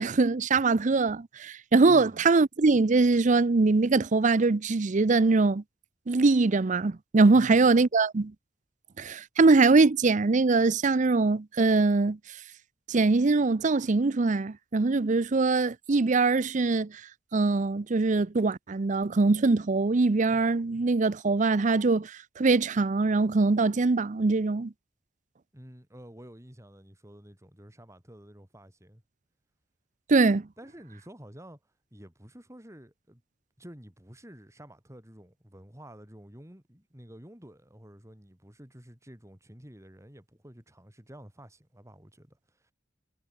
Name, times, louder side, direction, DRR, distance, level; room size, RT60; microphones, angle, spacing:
voice 1, 0.0-5.6 6.1-8.3 9.0-12.2 12.9-16.9 17.3-24.7 30.1-30.5, right 3 dB, 40° right, 0.6 m, -23 dB
voice 2, 1.9-2.2 7.3-7.7 25.5-29.0 30.6-33.2 33.6-42.7, equal, 15° right, 4.1 m, -50 dB
head